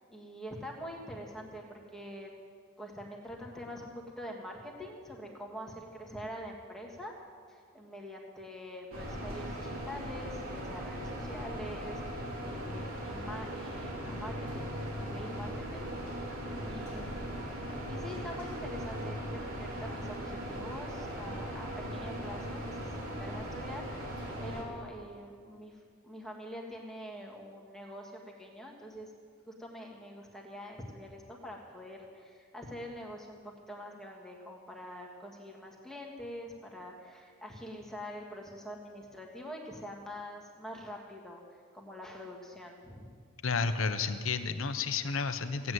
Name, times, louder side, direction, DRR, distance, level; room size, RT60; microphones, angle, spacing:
voice 1, 0.1-2.3 2.8-7.2 7.5-16.3 16.6-17.2 17.9-25.8 26.0-29.1 29.5-41.4 41.7-43.2, equal, ahead, -1 dB, 1.6 m, -45 dB
sound 1, 8.9-24.6, equal, 85° right, 3.1 m, -39 dB
voice 2, 43.4-45.7, left 5 dB, 75° left, 10 dB, 0.8 m, -31 dB
16.0 x 9.4 x 7.8 m, 2.1 s
head